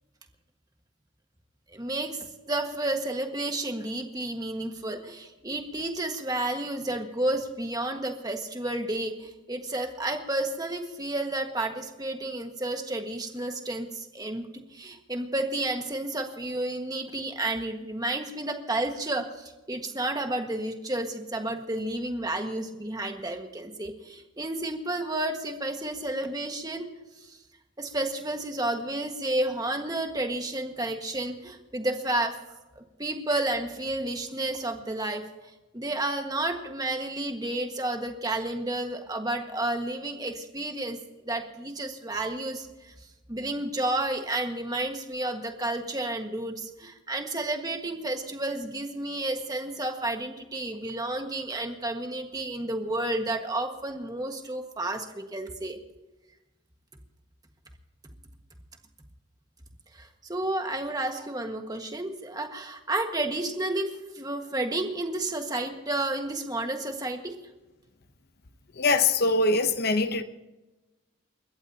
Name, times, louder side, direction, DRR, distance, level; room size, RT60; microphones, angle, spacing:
voice 1, 1.7-2.2 2.5-26.9 27.2-27.4 27.8-32.4 32.8-35.3 35.7-41.0 41.3-42.9 43.3-55.8 59.9-67.3, right 1 dB, 20° right, 1.6 m, -31 dB
voice 2, 68.8-70.2, left 3 dB, 45° left, 0.9 m, -23 dB
29.5 x 14.5 x 2.9 m
head